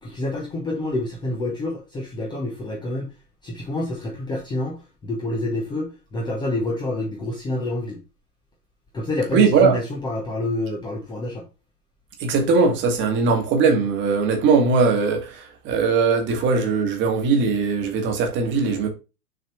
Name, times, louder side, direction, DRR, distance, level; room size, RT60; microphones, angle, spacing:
voice 1, 0.0-3.1 3.4-8.0 8.9-11.5, left 2 dB, 10° left, 0.9 m, -28 dB
voice 2, 9.3-9.7 12.2-18.9, right 4 dB, 20° right, 1.6 m, -20 dB
6.5 x 4.1 x 4.6 m
figure-of-eight pair, 110°, 50 cm